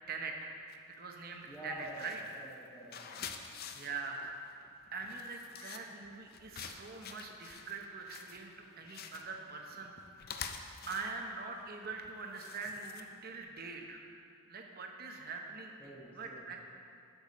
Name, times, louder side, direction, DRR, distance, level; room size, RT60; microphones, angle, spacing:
voice 1, 0.1-0.5 1.0-2.2 3.7-4.3 4.9-10.0 10.3-10.5 10.9-14.0 14.5-16.6, right 4 dB, 40° right, 2 dB, 0.8 m, -43 dB
sound 1, 0.7-1.0 1.4-13.4, left 6 dB, 45° left, 0.5 m, -48 dB
voice 2, 1.5-3.3 15.8-16.5, right 1 dB, 5° left, -8 dB, 1.0 m, -48 dB
10.5 x 6.9 x 4.2 m, 2.5 s
head